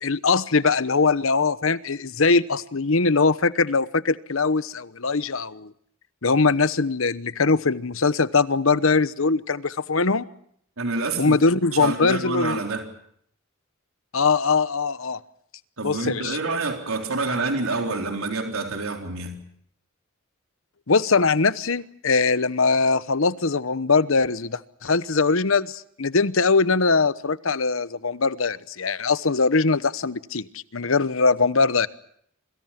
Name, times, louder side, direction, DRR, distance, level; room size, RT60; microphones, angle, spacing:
voice 1, 0.0-5.7 6.2-10.3 11.2-12.6 14.1-15.2 15.8-16.4 20.9-31.9, left 4 dB, 70° left, 16 dB, 1.0 m, -21 dB
voice 2, 10.8-11.4 11.7-12.9 15.8-19.4, right 3 dB, 85° right, 4 dB, 4.0 m, -27 dB
28.0 x 25.5 x 5.9 m, 0.67 s
head